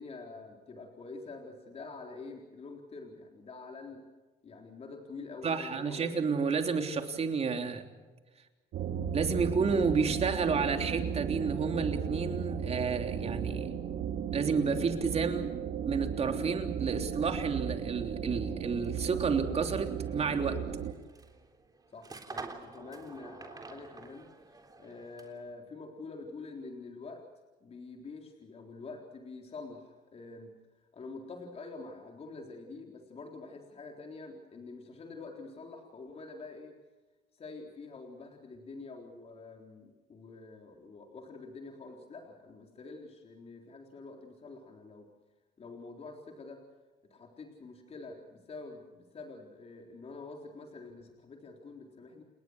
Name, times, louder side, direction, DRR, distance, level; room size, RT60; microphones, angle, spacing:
voice 1, 0.0-4.1 4.4-6.3 21.9-24.3 24.8-27.2 27.6-30.5 30.9-36.7 37.3-45.1 45.6-46.6 47.1-52.2, left 3 dB, 35° left, 2 dB, 3.9 m, -46 dB
voice 2, 5.4-7.9 9.1-13.7 14.3-15.5 15.8-20.6, right 5 dB, 40° right, 5 dB, 3.4 m, -31 dB
sound 1, 8.7-20.9, right 7 dB, 65° right, 2.1 m, -35 dB
sound 2, 18.7-25.5, right 3 dB, 20° right, 3.6 m, -49 dB
30.0 x 19.5 x 6.4 m, 1.3 s
cardioid pair, 110°, 17 cm